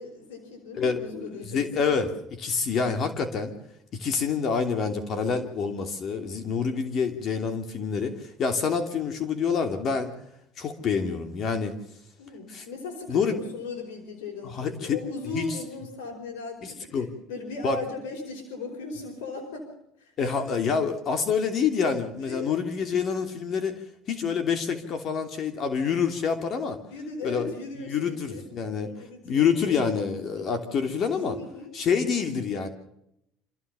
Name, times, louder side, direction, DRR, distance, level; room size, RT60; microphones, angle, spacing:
voice 1, 0.0-1.9 12.2-19.7 20.0-20.5 22.2-22.6 26.9-28.5 28.9-29.5 30.3-30.5 31.0-31.7, left 4 dB, 90° left, 2 dB, 4.8 m, -37 dB
voice 2, 0.7-1.1 1.5-3.5 3.9-10.1 10.6-11.7 12.5-12.6 13.1-13.4 14.4-15.0 15.3-15.4 16.6-17.1 17.6-17.8 20.2-23.8 24.1-26.8 27.2-27.5 27.9-28.9 29.2-31.4 31.7-32.7, left 6 dB, 50° left, 7 dB, 2.9 m, -27 dB
27.5 x 15.0 x 7.0 m, 0.80 s
supercardioid pair, 95°, 0 cm